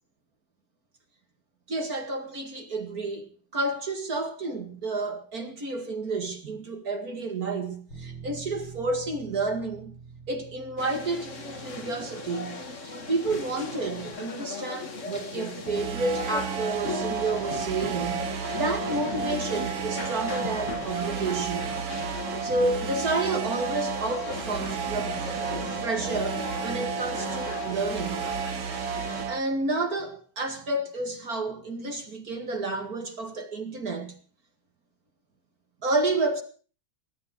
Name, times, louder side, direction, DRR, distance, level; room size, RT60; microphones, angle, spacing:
voice 1, 1.7-3.3 3.5-10.0 10.3-11.3 11.6-21.8 22.4-25.2 25.8-28.2 29.3-34.2 35.8-36.4, right 2 dB, 50° right, 2.5 m, -30 dB
Bass guitar, 7.9-14.1, right 5 dB, 80° left, 8.5 m, -47 dB
sound 1, 10.8-29.3, left 3 dB, 40° left, 2.1 m, -37 dB
sound 2, 15.7-29.4, right 7 dB, 80° right, 1.8 m, -32 dB
18.0 x 11.5 x 6.4 m
omnidirectional pair, 2.2 m